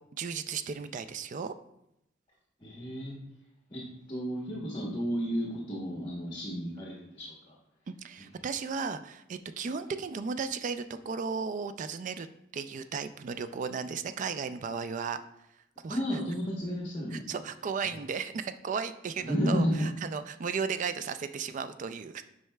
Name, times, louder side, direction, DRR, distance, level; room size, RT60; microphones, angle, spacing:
voice 1, 0.2-1.5 7.9-12.3 12.5-15.2 15.8-16.2 17.1-22.2, right 5 dB, 40° right, 11 dB, 0.3 m, -35 dB
voice 2, 2.6-3.2 3.7-3.8 4.1-7.5 15.9-17.3 19.2-19.9, equal, 25° left, -2 dB, 1.0 m, -32 dB
7.8 x 5.4 x 2.2 m, 0.82 s
head